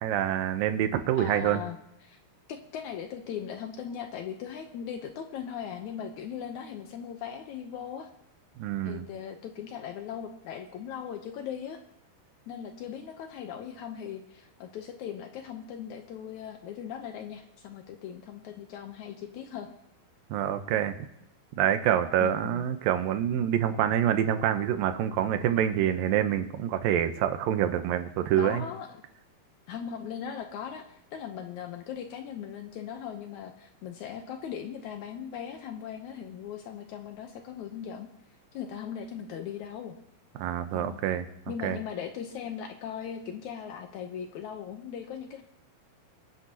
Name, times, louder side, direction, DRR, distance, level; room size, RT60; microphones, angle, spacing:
voice 1, 0.0-1.6 8.6-9.1 20.3-20.9 21.6-28.7 40.4-41.3 41.6-41.8, right 10 dB, 80° right, 9 dB, 2.4 m, -26 dB
voice 2, 1.2-1.8 2.0-2.2 2.5-8.1 8.8-11.8 12.5-19.7 22.2-22.6 28.4-28.9 29.7-38.1 38.5-40.0 40.7-41.0 41.5-45.4, left 8 dB, 75° left, 5 dB, 1.7 m, -39 dB
24.0 x 10.0 x 2.8 m, 0.77 s
omnidirectional pair, 4.3 m